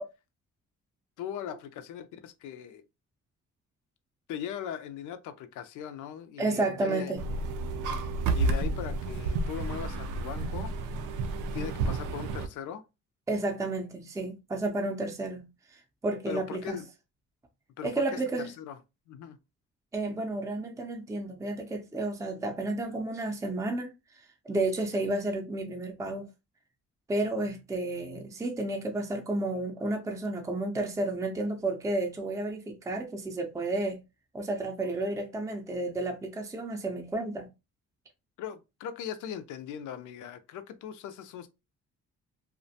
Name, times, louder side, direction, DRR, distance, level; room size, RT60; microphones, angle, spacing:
voice 1, 1.2-2.8 4.3-7.1 8.4-10.7 11.5-12.8 16.3-16.9 17.8-18.8 19.1-19.4 38.4-41.5, left 9 dB, 80° left, 0.5 m, -39 dB
voice 2, 6.4-7.3 13.3-15.5 15.7-16.8 17.8-18.5 19.9-23.9 24.5-26.3 27.1-34.0 34.3-37.5, right 2 dB, 10° right, 0.5 m, -31 dB
sound 1, 7.2-12.5, right 3 dB, 80° right, 0.5 m, -31 dB
2.4 x 2.1 x 2.7 m
cardioid pair, 90°, 30 cm